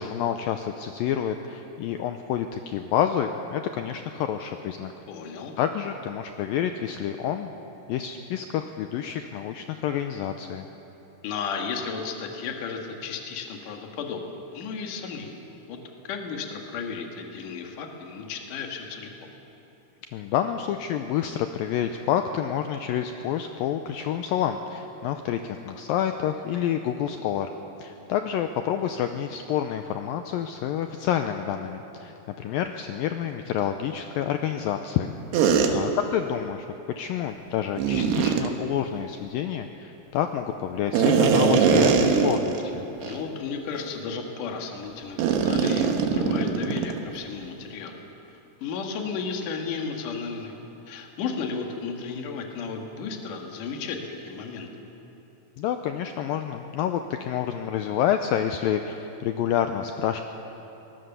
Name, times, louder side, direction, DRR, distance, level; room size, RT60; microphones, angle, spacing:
voice 1, 0.0-4.9 5.6-7.5 7.9-10.7 20.1-27.5 27.8-36.7 37.0-42.9 55.6-60.2, left 9 dB, 90° left, 7 dB, 2.0 m, -28 dB
voice 2, 5.1-5.5 11.2-15.4 15.7-19.3 35.4-35.8 43.0-48.0 48.6-50.6 50.9-54.7, left 5 dB, 60° left, 3 dB, 2.9 m, -34 dB
sound 1, 35.3-35.7 37.8-38.5 40.9-42.7 43.0-43.2 43.8-43.9 45.2-47.0, right 6 dB, 80° right, 3.3 m, -21 dB
22.5 x 19.0 x 6.9 m, 3.0 s
omnidirectional pair, 4.8 m